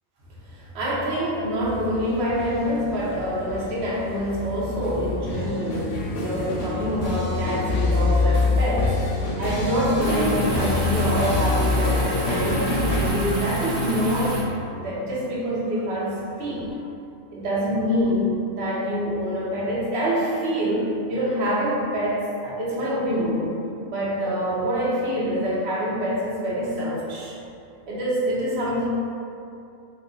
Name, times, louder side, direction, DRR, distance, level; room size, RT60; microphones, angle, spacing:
voice 1, 0.4-9.0 9.4-14.4 14.7-16.8 17.3-23.6 23.9-27.3 27.9-28.9, equal, 60° right, -6 dB, 0.9 m, -26 dB
sound 1, 1.6-16.7, left 3 dB, 70° left, 0.9 m, -27 dB
sound 2, 10.0-14.4, right 1 dB, 30° left, 0.5 m, -29 dB
3.0 x 2.2 x 3.7 m, 2.6 s
omnidirectional pair, 1.3 m